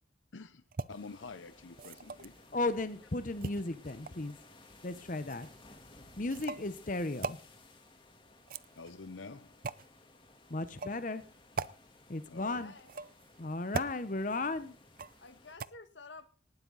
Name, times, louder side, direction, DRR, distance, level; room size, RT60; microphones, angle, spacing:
voice 1, 0.3-0.6 0.9-2.4 8.7-9.7 12.3-12.7, left 4 dB, 90° left, 0.8 m, -48 dB
sound 1, 0.7-0.9 1.7-2.4 3.4-4.3 5.3-5.5 6.3-6.7 7.2-7.4 8.3-9.0 9.6-9.9 10.7-11.0 11.6-11.7 12.8-13.2 13.7-14.0 15.0-15.3 15.6-15.7, right 4 dB, 50° right, 0.6 m, -39 dB
sound 2, 0.9-15.6, left 2 dB, 25° left, 3.0 m, -58 dB
voice 2, 2.5-4.4 4.8-5.5 6.2-7.4 10.5-11.2 12.1-12.7 13.4-14.7, left 2 dB, 45° left, 1.0 m, -35 dB
voice 3, 12.3-12.9 15.2-16.3, left 3 dB, 70° left, 1.7 m, -51 dB
19.0 x 12.0 x 4.1 m
head